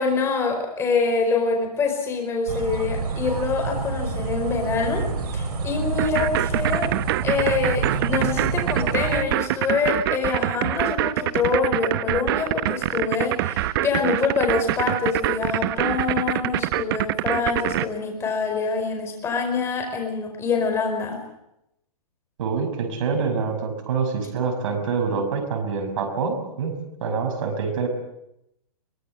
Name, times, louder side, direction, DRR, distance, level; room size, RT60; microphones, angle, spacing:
voice 1, 0.0-6.9 7.2-21.2, left 4 dB, 15° left, 3 dB, 4.9 m, -25 dB
sound 1, 2.5-9.2, right 4 dB, 75° right, 3.8 m, -28 dB
sound 2, 6.0-17.9, right 15 dB, 35° right, 0.8 m, -24 dB
voice 2, 22.4-26.7 27.0-27.9, right 5 dB, 55° right, 4 dB, 5.8 m, -26 dB
23.0 x 21.0 x 7.6 m, 0.82 s
hypercardioid pair, 160°, 20 cm